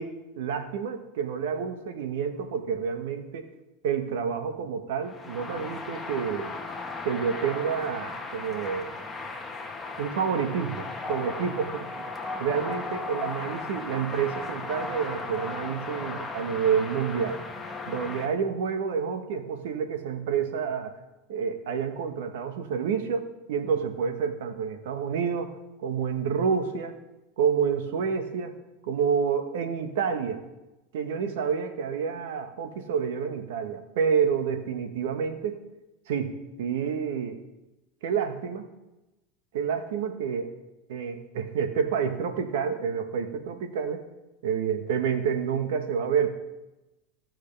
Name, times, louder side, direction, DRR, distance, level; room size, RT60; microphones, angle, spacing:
voice 1, 0.0-3.5 3.8-6.5 7.0-8.9 10.0-11.8 12.4-17.4 17.9-21.0 21.3-25.5 25.8-27.0 27.4-28.5 28.8-30.4 30.9-35.6 36.1-37.4 38.0-38.6 39.5-40.5 40.9-44.0 44.4-46.3, right 7 dB, 80° right, 7 dB, 1.3 m, -28 dB
sound 1, 5.0-18.3, left 3 dB, 15° left, 1.4 m, -36 dB
16.5 x 6.4 x 3.4 m, 0.99 s
supercardioid pair, 115°, 0 cm